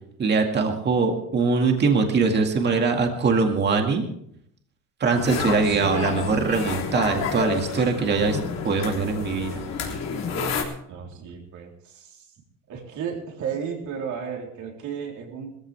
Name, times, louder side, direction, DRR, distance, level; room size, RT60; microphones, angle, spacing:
voice 1, 0.2-4.0 5.0-8.4 8.6-9.6, right 4 dB, 30° right, 3 dB, 2.1 m, -22 dB
sound 1, 5.1-10.6, left 5 dB, 55° left, 3.3 m, -30 dB
voice 2, 10.9-12.3 12.7-15.6, right 7 dB, 60° right, 0 dB, 3.9 m, -34 dB
20.0 x 15.0 x 3.5 m, 0.74 s
cardioid pair, 140°, 33 cm